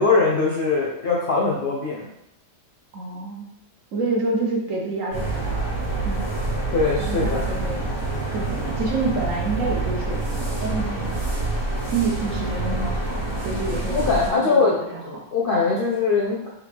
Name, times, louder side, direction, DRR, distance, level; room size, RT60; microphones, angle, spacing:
voice 1, 0.0-2.1 6.7-7.5 13.9-16.5, left 4 dB, 55° left, -3 dB, 0.6 m, -22 dB
voice 2, 2.9-3.5 3.9-5.7 6.0-6.2 7.0-7.8 8.3-11.2 11.8-14.0 14.3-15.0, right 3 dB, 65° right, -1 dB, 1.1 m, -28 dB
sound 1, 5.1-14.3, right 2 dB, 80° right, 1.6 m, -27 dB
3.8 x 3.3 x 3.2 m, 0.83 s
omnidirectional pair, 1.5 m